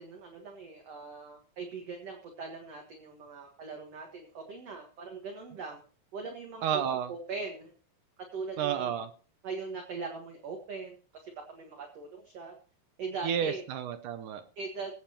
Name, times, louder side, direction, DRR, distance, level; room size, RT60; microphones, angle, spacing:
voice 1, 0.0-5.8 6.1-6.7 7.1-7.7 8.3-8.9 9.4-11.0 11.2-12.6 13.0-13.6 14.6-15.0, right 4 dB, 55° right, 2 dB, 2.2 m, -40 dB
voice 2, 6.6-7.1 8.6-9.1 13.2-14.4, right 9 dB, 75° right, 9 dB, 2.1 m, -31 dB
22.5 x 8.7 x 2.9 m, 0.39 s
omnidirectional pair, 4.2 m